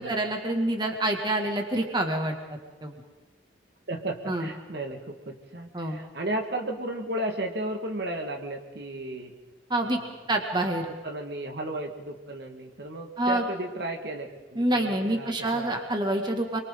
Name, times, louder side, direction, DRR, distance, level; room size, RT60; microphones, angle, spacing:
voice 1, 0.0-2.3 2.8-2.9 4.3-4.5 5.7-6.0 9.7-10.0 10.3-10.9 13.2-13.4 14.6-16.6, right 1 dB, 25° right, 2 dB, 2.1 m, -27 dB
voice 2, 3.9-9.3 9.8-10.0 11.0-15.7, right 1 dB, 55° right, 2 dB, 1.9 m, -34 dB
29.5 x 23.5 x 3.9 m, 1.2 s
head